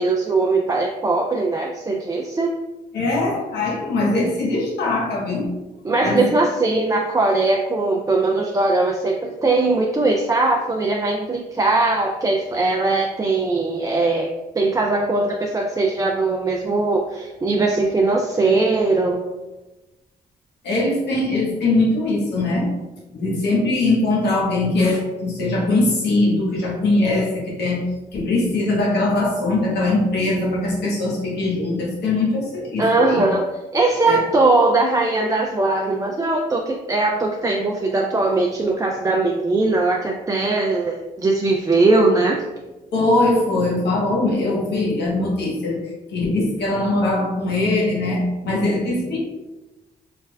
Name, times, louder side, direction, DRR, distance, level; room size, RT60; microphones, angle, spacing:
voice 1, 0.0-2.6 5.8-14.3 14.5-19.3 32.8-33.5 33.7-42.4, right 2 dB, 20° right, 1 dB, 0.4 m, -20 dB
voice 2, 2.9-5.5 6.0-6.2 20.6-22.7 23.1-27.8 28.1-33.2 34.0-34.2 42.9-45.8 46.1-49.2, left 2 dB, 75° left, -3 dB, 1.0 m, -21 dB
3.3 x 3.2 x 2.2 m, 1.1 s
cardioid pair, 65°, 18 cm